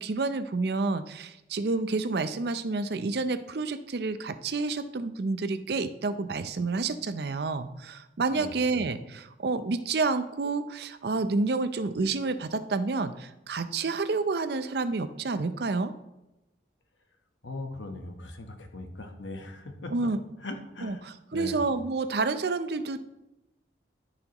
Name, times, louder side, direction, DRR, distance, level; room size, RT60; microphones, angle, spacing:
voice 1, 0.0-15.9 19.9-20.2 20.8-23.0, right 3 dB, 60° right, 11 dB, 0.5 m, -29 dB
voice 2, 17.4-19.9 20.4-21.0 21.3-21.6, left 2 dB, 85° left, 5 dB, 1.1 m, -39 dB
13.5 x 5.9 x 3.0 m, 0.95 s
head